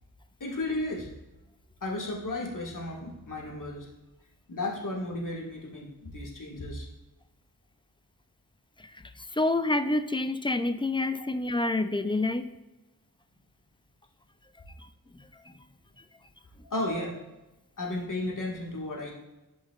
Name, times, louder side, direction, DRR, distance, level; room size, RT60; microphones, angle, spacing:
voice 1, 0.4-1.1 1.8-3.9 4.5-6.9 16.6-17.2 17.8-19.1, left 2 dB, 55° left, -3 dB, 1.8 m, -34 dB
voice 2, 9.3-12.5 15.1-15.2, left 2 dB, 15° left, 10 dB, 0.4 m, -27 dB
11.5 x 5.4 x 2.4 m, 1.0 s
wide cardioid pair, 75°, 38 cm